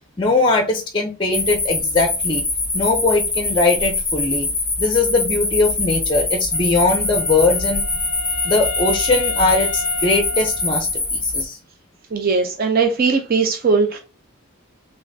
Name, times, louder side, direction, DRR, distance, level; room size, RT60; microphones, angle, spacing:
voice 1, 0.2-2.4 2.7-4.5 4.8-7.8 8.4-11.6, left 3 dB, 20° left, 0.5 m, -20 dB
sound 1, 1.3-11.4, left 2 dB, 5° left, 0.9 m, -23 dB
Wind instrument woodwind instrument, 6.5-11.3, left 5 dB, 80° left, 0.4 m, -32 dB
voice 2, 12.1-14.0, right 4 dB, 45° right, 0.5 m, -19 dB
4.1 x 3.4 x 2.6 m
head